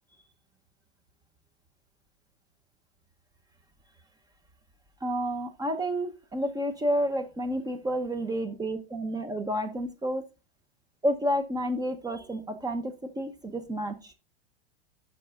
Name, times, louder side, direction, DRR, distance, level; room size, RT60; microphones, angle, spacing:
voice 1, 5.0-10.2 11.0-14.1, equal, 10° right, 7 dB, 0.9 m, -30 dB
15.0 x 6.1 x 2.4 m, 0.29 s
hypercardioid pair, 105°, 31 cm